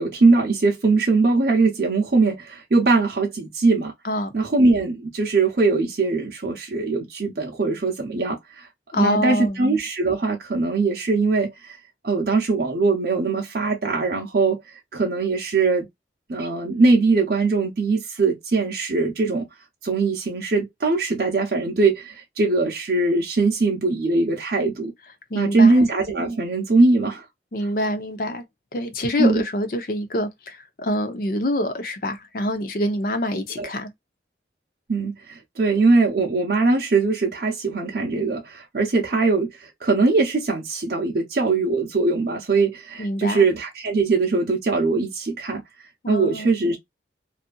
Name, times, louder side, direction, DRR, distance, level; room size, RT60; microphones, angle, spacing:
voice 1, 0.0-3.9 4.3-8.7 9.0-11.8 12.0-14.6 14.9-15.9 16.3-19.5 19.8-24.9 25.3-27.2 29.2-29.4 33.6-33.7 34.9-45.6 46.1-46.8, right 3 dB, 60° right, 0.6 m, -21 dB
voice 2, 8.9-9.6 25.3-25.9 27.5-28.4 28.7-33.9 43.0-43.5 46.0-46.5, left 1 dB, 50° left, 0.6 m, -25 dB
2.7 x 2.4 x 2.2 m
head